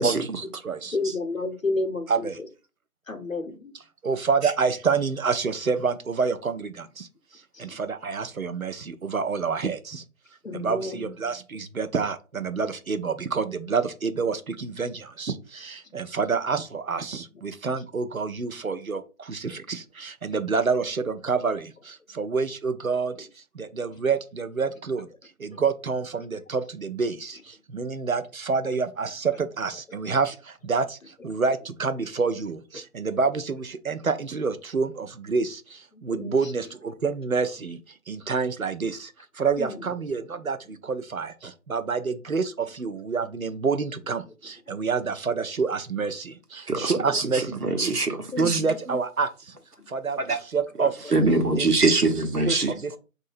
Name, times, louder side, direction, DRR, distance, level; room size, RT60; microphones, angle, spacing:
voice 1, 0.0-1.0 2.1-2.3 4.0-7.1 7.6-10.0 10.5-23.3 23.5-25.1 25.4-37.8 38.1-47.9 48.4-49.5 49.9-51.1 51.6-51.7 52.5-53.0, right 5 dB, 65° right, 0.7 m, -28 dB
voice 2, 0.9-2.5 3.1-3.7 7.5-7.8 10.4-11.1 19.5-19.6 25.5-25.6 35.9-36.5 39.6-39.8 44.7-44.8 47.1-47.2 47.8-47.9 48.3-48.8 49.8-49.9 50.1-50.3, left 2 dB, 60° left, 0.9 m, -32 dB
voice 3, 46.7-48.6 50.3-50.4 50.8-52.7, right 3 dB, 85° right, 1.1 m, -24 dB
3.8 x 2.7 x 4.2 m
figure-of-eight pair, 175°, 45 cm